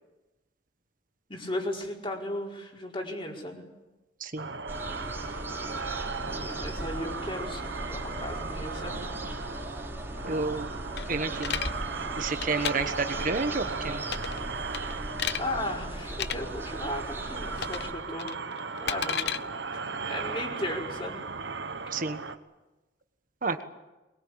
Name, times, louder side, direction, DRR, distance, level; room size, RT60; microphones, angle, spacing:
voice 1, 1.3-3.6 6.2-9.0 15.4-18.4 18.8-19.5 19.9-21.2, left 1 dB, 30° left, -1 dB, 4.9 m, -36 dB
sound 1, 4.4-22.4, right 4 dB, 85° right, 1.3 m, -37 dB
sound 2, 4.7-17.9, right 1 dB, 15° right, 3.5 m, -38 dB
voice 2, 10.2-10.7 11.1-11.6 12.2-14.0 21.9-22.2 23.4-23.6, right 4 dB, 50° right, 8 dB, 1.3 m, -30 dB
sound 3, 11.0-11.7 12.3-12.7 14.0-14.4 14.7-15.4 16.1-16.4 17.6-17.9 18.2-19.4, left 8 dB, 65° left, 0.8 m, -32 dB
23.0 x 21.5 x 8.7 m, 1.1 s
head